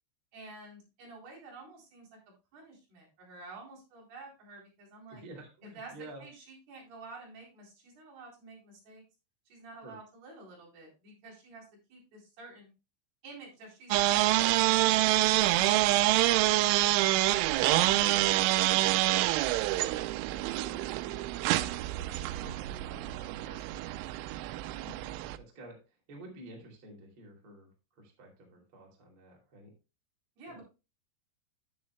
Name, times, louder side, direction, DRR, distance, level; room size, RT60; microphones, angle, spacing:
voice 1, 0.3-2.1 2.5-5.2 5.6-5.9 6.2-9.0 9.5-12.7 13.2-16.7 17.6-24.0 24.8-25.0 30.4-30.6, right 2 dB, 55° right, -2 dB, 5.6 m, -50 dB
voice 2, 5.1-6.2 9.8-9.9 25.3-29.7 30.5-30.6, right 1 dB, 35° right, -1 dB, 2.8 m, -50 dB
sound 1, 13.9-25.4, right 16 dB, 85° right, 2.9 m, -27 dB
11.0 x 10.5 x 2.2 m, 0.29 s
omnidirectional pair, 5.7 m